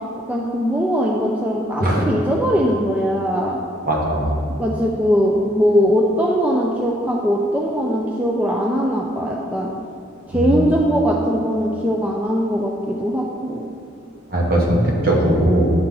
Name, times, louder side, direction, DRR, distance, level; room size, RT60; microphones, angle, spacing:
voice 1, 0.3-3.6 4.6-9.7 10.3-13.6, equal, 5° right, -2 dB, 0.4 m, -20 dB
voice 2, 3.8-4.3 10.3-10.5 14.3-15.7, right 1 dB, 45° right, -2 dB, 1.2 m, -18 dB
9.7 x 4.1 x 3.8 m, 2.5 s
head